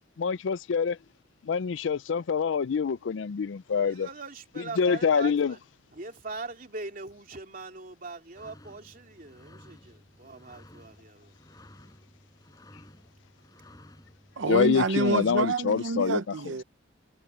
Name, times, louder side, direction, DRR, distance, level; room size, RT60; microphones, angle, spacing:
voice 1, 0.2-1.0 1.4-4.1 4.8-5.5 14.5-16.2, left 6 dB, 75° left, 0.4 m, -26 dB
voice 2, 3.8-5.6 5.9-11.5, right 3 dB, 45° right, 3.0 m, -41 dB
sound 1, 8.3-14.7, left 1 dB, 20° left, 6.2 m, -54 dB
voice 3, 14.4-16.6, right 3 dB, 75° right, 0.7 m, -27 dB
head